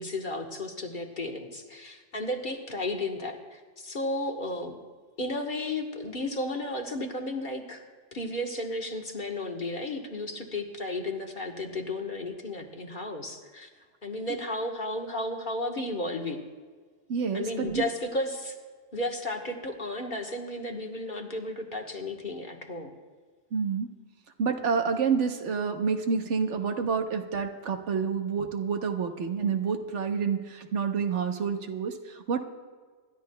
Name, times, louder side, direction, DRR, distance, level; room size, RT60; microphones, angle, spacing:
voice 1, 0.0-4.8 5.2-7.8 8.1-13.7 14.0-16.4 17.3-18.5 18.9-22.9, left 1 dB, 45° left, 2 dB, 1.5 m, -33 dB
voice 2, 17.1-17.8 23.5-23.9 24.4-32.4, right 6 dB, 85° right, 6 dB, 1.3 m, -28 dB
26.0 x 12.5 x 2.3 m, 1.5 s
omnidirectional pair, 1.2 m